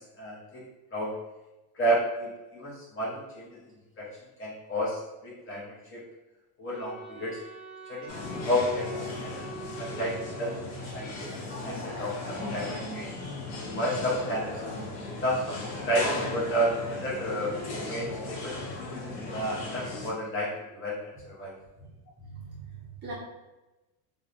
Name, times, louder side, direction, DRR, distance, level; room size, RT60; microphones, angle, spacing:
voice 1, 0.2-0.6 0.9-1.1 1.8-3.6 4.0-4.1 4.4-6.0 6.6-7.4 7.9-8.1 8.4-9.5 9.8-10.5 10.9-13.1 13.7-14.5 15.2-18.6 19.3-21.5, equal, 25° left, -5 dB, 0.6 m, -31 dB
Wind instrument woodwind instrument, 6.7-11.2, equal, ahead, 0.9 m, -43 dB
sound 1, 8.1-20.1, left 2 dB, 75° left, 1.0 m, -37 dB
voice 2, 22.2-23.1, right 3 dB, 25° right, -6 dB, 0.5 m, -42 dB
2.8 x 2.0 x 2.4 m, 1.0 s
cardioid pair, 140°, 47 cm